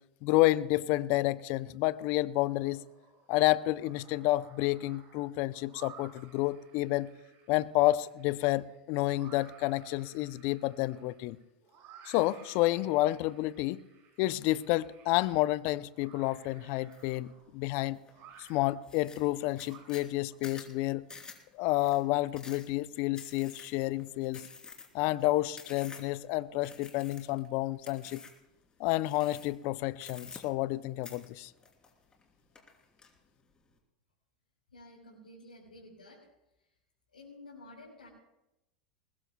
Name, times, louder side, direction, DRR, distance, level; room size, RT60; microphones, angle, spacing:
voice 1, 0.2-2.8 3.3-7.1 7.5-11.4 12.1-13.8 14.2-18.0 18.4-21.1 21.5-24.5 24.9-28.2 28.8-31.5, left 17 dB, 55° left, 0.6 m, -30 dB
sound 1, 2.6-3.3 3.6-20.4, right 7 dB, 50° right, 5.3 m, -57 dB
sound 2, 16.9-17.2 17.6-18.1 18.5-18.6 18.8-26.2 26.6-27.5 27.8-28.4 29.0-29.7 30.0-30.8 31.0-32.2 32.5-33.1, left 4 dB, 20° left, 3.4 m, -49 dB
voice 2, 34.7-36.3 36.5-36.8 37.1-38.1, left 2 dB, 90° left, 4.2 m, -52 dB
21.0 x 20.5 x 2.3 m
hypercardioid pair, 90°, 4 cm